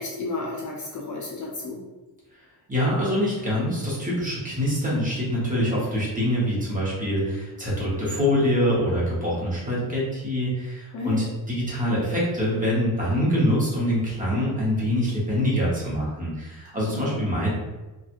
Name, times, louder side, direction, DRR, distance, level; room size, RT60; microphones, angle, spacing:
voice 1, 0.0-1.8 10.9-11.3 16.8-17.3, left 3 dB, 45° left, -2 dB, 0.6 m, -32 dB
voice 2, 2.7-17.5, equal, 20° right, -6 dB, 1.0 m, -25 dB
2.8 x 2.4 x 2.5 m, 1.1 s
cardioid pair, 130°, 42 cm